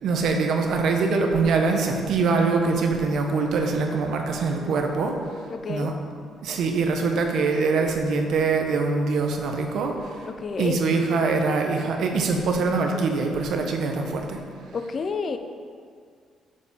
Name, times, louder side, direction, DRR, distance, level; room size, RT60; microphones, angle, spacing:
voice 1, 0.0-5.2 5.7-5.9 6.4-10.3 10.6-14.4, right 4 dB, 75° right, 3 dB, 1.2 m, -23 dB
voice 2, 5.5-6.0 10.3-10.8 14.7-15.4, left 5 dB, 45° left, 8 dB, 0.7 m, -30 dB
8.5 x 5.3 x 7.1 m, 2.1 s
cardioid pair, 90°, 0 cm